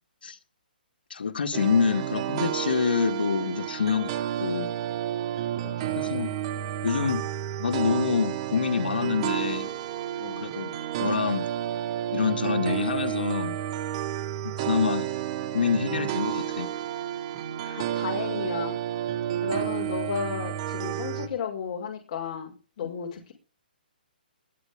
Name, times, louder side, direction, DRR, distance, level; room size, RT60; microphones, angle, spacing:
voice 1, 1.1-4.7 6.0-6.3 6.8-7.3 7.6-9.7 10.4-10.7 11.0-11.5 12.1-13.6 14.4-15.1 15.5-16.7 22.8-22.9, left 6 dB, 80° left, 2.3 m, -26 dB
sound 1, 1.5-21.3, right 11 dB, 40° right, 2.6 m, -31 dB
voice 2, 5.6-6.0 10.2-10.5 17.6-18.8 19.4-23.3, left 6 dB, 45° left, 5.7 m, -34 dB
21.5 x 10.0 x 3.8 m
hypercardioid pair, 150°, 5 cm